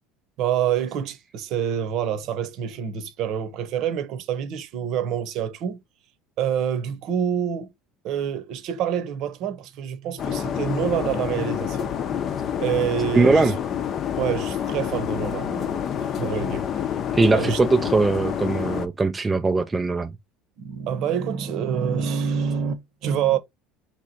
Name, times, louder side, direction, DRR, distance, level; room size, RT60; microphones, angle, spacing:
voice 1, 0.4-5.8 6.4-7.7 8.0-13.5 14.2-16.7 17.3-17.6 20.6-23.4, right 8 dB, 55° right, 0.9 m, -27 dB
sound 1, 10.2-18.9, left 9 dB, 40° left, 0.6 m, -28 dB
voice 2, 13.2-13.5 17.1-20.1, right 3 dB, 15° right, 0.4 m, -20 dB
3.6 x 3.0 x 4.1 m
supercardioid pair, 130°, 0 cm